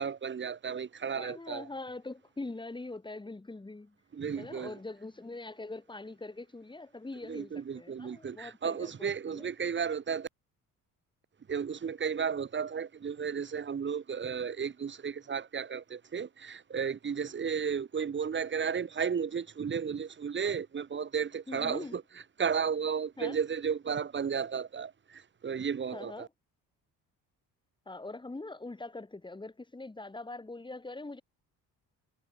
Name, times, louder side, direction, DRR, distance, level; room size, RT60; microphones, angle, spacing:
voice 1, 0.0-1.7 4.1-4.8 7.3-10.3 11.5-22.0 22.4-26.3, right 6 dB, 35° right, 1.9 m, -33 dB
voice 2, 1.2-4.0 4.4-9.5 21.5-22.0 23.2-23.4 25.9-26.3 27.9-31.2, left 2 dB, 15° left, 6.8 m, -43 dB
cardioid pair, 110°, 34 cm